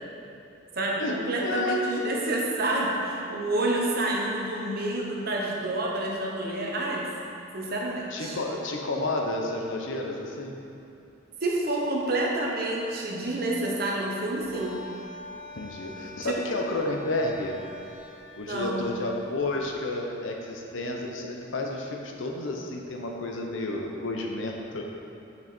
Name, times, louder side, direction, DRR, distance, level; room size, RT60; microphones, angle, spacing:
voice 1, 0.8-7.1 7.5-8.4 11.4-14.8 16.2-16.4 18.5-18.9, right 2 dB, 50° right, -2 dB, 1.0 m, -28 dB
voice 2, 1.4-2.0 8.1-10.6 15.6-17.6 18.4-24.9, left 2 dB, 75° left, 1 dB, 0.7 m, -31 dB
sound 1, 14.4-19.6, left 2 dB, 25° left, 1.4 m, -46 dB
6.1 x 6.1 x 4.3 m, 2.8 s
head